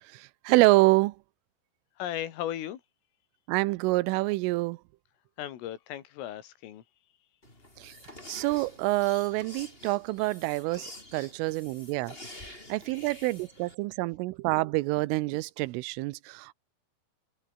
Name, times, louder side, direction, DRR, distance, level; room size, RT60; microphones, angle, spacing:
voice 1, 0.1-1.2 3.5-4.8 7.8-8.0 8.3-12.2 12.7-16.5, right 21 dB, 85° right, 3.3 m, -27 dB
voice 2, 2.0-2.8 5.4-6.8, left 12 dB, 90° left, 4.9 m, -36 dB
sound 1, 7.4-13.8, left 1 dB, 10° left, 5.2 m, -48 dB
open air
omnidirectional pair, 5.7 m